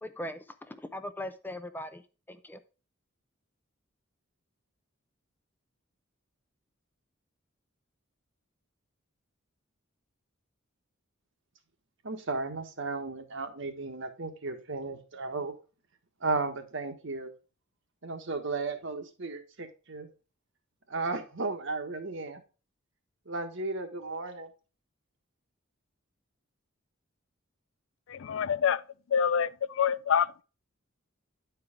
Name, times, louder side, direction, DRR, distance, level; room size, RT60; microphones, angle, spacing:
voice 1, 0.0-2.6, left 1 dB, 10° left, 0.6 m, -40 dB
voice 2, 12.0-15.5 16.2-17.3 18.0-20.1 20.9-22.4 23.3-24.5, right 3 dB, 65° right, 1.3 m, -34 dB
voice 3, 28.1-28.8 29.1-30.4, left 7 dB, 70° left, 0.4 m, -26 dB
10.0 x 4.7 x 3.6 m
head